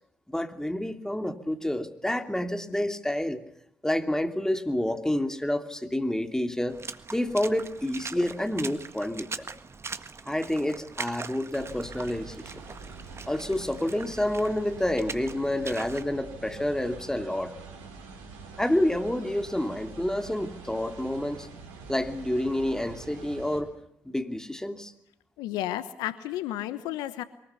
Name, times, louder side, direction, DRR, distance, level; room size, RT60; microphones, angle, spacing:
voice 1, 0.3-3.4 3.8-6.8 7.1-9.3 10.3-12.5 13.3-17.5 18.6-21.5 21.9-23.7 24.0-24.9, left 1 dB, 10° left, 7 dB, 2.8 m, -28 dB
Water / Splash splatter, 6.7-16.0, right 4 dB, 40° right, 1.6 m, -41 dB
sound 1, 11.6-23.6, right 4 dB, 80° right, 3.9 m, -45 dB
voice 2, 25.4-27.2, left 13 dB, 80° left, 14 dB, 1.1 m, -32 dB
23.0 x 20.0 x 8.2 m, 0.77 s
hypercardioid pair, 40°, 7 cm